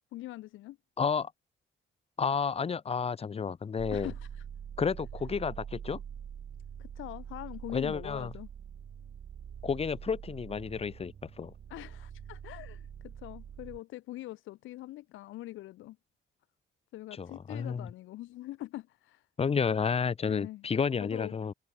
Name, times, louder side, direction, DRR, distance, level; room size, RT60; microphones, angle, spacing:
voice 1, 0.1-0.8 3.9-4.4 6.8-8.5 11.7-16.0 16.9-19.3 20.3-20.7 21.0-21.3, left 16 dB, 85° left, 0.8 m, -43 dB
voice 2, 1.0-1.3 2.2-4.1 4.8-6.0 7.7-8.3 9.6-11.5 17.2-17.9 19.4-21.5, left 6 dB, 30° left, 0.7 m, -31 dB
sound 1, 3.8-13.8, right 8 dB, 50° right, 1.6 m, -45 dB
cardioid pair, 90°, 20 cm